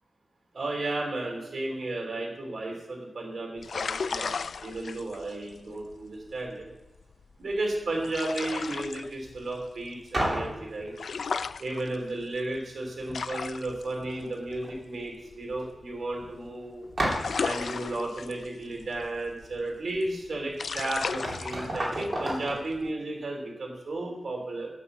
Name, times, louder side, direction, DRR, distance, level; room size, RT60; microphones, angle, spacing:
voice 1, 0.5-4.3 4.6-6.7 7.4-10.9 11.6-16.9 17.4-24.7, right 2 dB, 60° right, 0 dB, 3.3 m, -33 dB
sound 1, 3.6-16.5 16.7-22.9, left 5 dB, 65° left, 0.3 m, -36 dB
sound 2, 10.1-10.6 12.6-12.7 13.0-13.6 13.9-14.7 15.0-15.1 15.6-15.7 17.0-17.5 20.5-20.6 21.0-22.6, right 1 dB, 35° right, 3.1 m, -32 dB
8.3 x 8.3 x 6.7 m, 1.0 s
wide cardioid pair, 140°, 0 cm